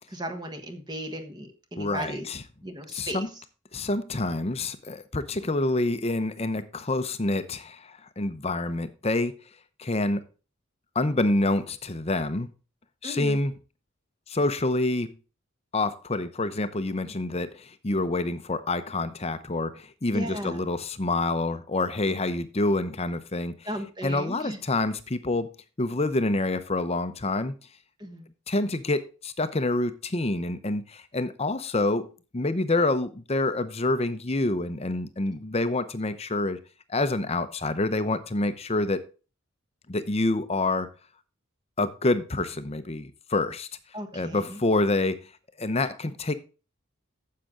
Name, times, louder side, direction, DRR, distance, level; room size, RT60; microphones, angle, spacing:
voice 1, 0.1-2.3 2.6-3.2 13.0-13.4 20.1-20.6 23.6-24.6 28.0-28.3 43.9-44.6, equal, 20° right, 1.4 m, -36 dB
voice 2, 1.8-2.4 2.9-3.3 3.7-9.4 9.8-10.2 10.9-12.5 13.0-13.5 14.3-15.1 15.7-23.6 24.0-25.5 25.8-27.5 28.5-36.6 36.9-39.0 39.9-40.9 41.8-43.7 44.1-45.2 45.6-46.3, left 2 dB, 30° left, 0.8 m, -27 dB
10.0 x 7.6 x 3.8 m
head